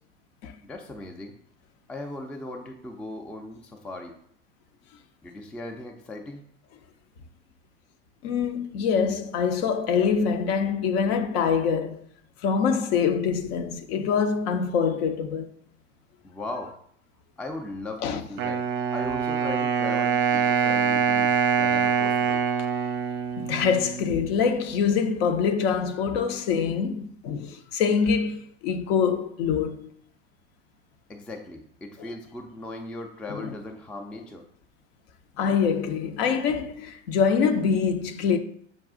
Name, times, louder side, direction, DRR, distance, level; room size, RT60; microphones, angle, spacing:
voice 1, 0.6-1.4 1.9-4.2 5.2-6.4 16.2-16.8 17.4-18.7 18.9-22.4 31.1-34.5, left 2 dB, 5° left, 0.3 m, -38 dB
voice 2, 8.2-12.0 12.4-15.5 18.0-18.2 23.4-29.9 33.4-33.5 35.4-38.4, left 6 dB, 60° left, 0.6 m, -25 dB
Wind instrument woodwind instrument, 18.4-24.3, right 7 dB, 35° right, 0.6 m, -24 dB
6.1 x 2.3 x 3.6 m
hypercardioid pair, 85°, 36 cm